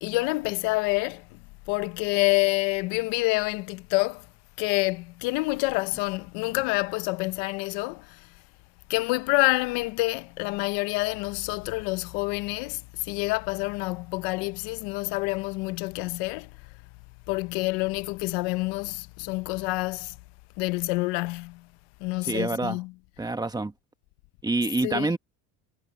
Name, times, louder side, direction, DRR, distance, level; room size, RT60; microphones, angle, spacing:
voice 1, 0.0-1.4 1.7-4.3 4.6-8.3 8.9-16.5 17.3-20.2 20.6-21.6 22.0-23.0 24.8-25.1, left 24 dB, 80° left, 0.9 m, -27 dB
voice 2, 22.2-22.8 23.2-23.7 24.4-25.2, right 2 dB, 10° right, 1.5 m, -27 dB
cardioid pair, 135°, 40 cm